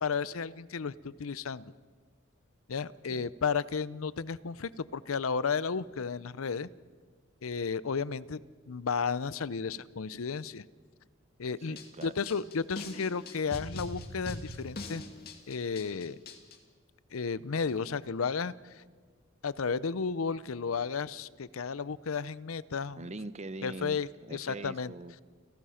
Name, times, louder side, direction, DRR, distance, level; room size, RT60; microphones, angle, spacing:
voice 1, 0.0-1.7 2.7-6.7 7.4-8.4 8.7-10.6 11.4-11.8 12.0-15.0 15.5-16.2 17.1-18.8 19.4-23.0 23.6-24.9, left 5 dB, 85° left, 18 dB, 0.6 m, -33 dB
voice 2, 11.6-12.1 23.0-25.2, right 2 dB, 35° right, 15 dB, 0.7 m, -43 dB
sound 1, 11.8-16.6, left 2 dB, 50° left, 2.1 m, -42 dB
29.5 x 17.5 x 5.8 m, 1.5 s
head